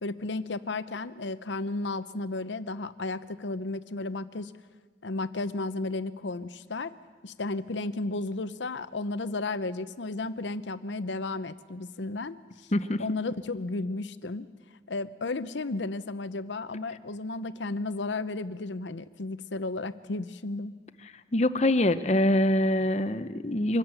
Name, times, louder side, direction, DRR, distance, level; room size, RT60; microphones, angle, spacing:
voice 1, 0.0-4.5 5.0-6.9 7.2-12.7 13.0-14.5 14.9-20.7, left 3 dB, 85° left, 13 dB, 0.8 m, -33 dB
voice 2, 12.7-13.0 21.3-23.8, left 1 dB, 35° left, 11 dB, 0.8 m, -24 dB
24.0 x 13.5 x 9.0 m, 1.5 s
head